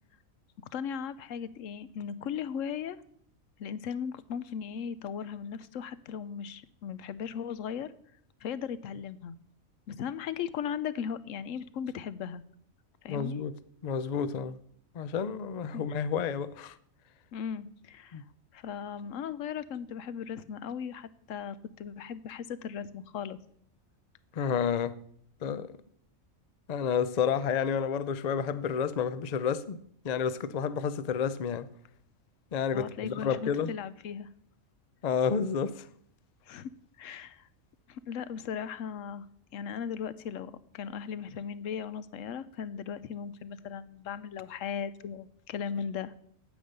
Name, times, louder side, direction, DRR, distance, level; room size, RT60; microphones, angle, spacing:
voice 1, 0.7-3.0 3.6-7.9 8.4-9.4 9.9-12.4 13.0-13.4 15.7-15.8 17.3-18.2 18.5-23.4 32.7-34.3 36.5-36.7 37.0-37.5 37.9-39.3 39.5-46.1, left 7 dB, 70° left, 1.0 m, -37 dB
voice 2, 13.1-13.5 13.8-14.6 14.9-16.8 18.1-18.2 24.3-25.0 25.4-25.8 26.7-29.8 30.0-31.7 32.5-33.7 35.0-35.9, left 7 dB, 55° left, 0.4 m, -30 dB
9.3 x 8.1 x 6.6 m
omnidirectional pair, 1.4 m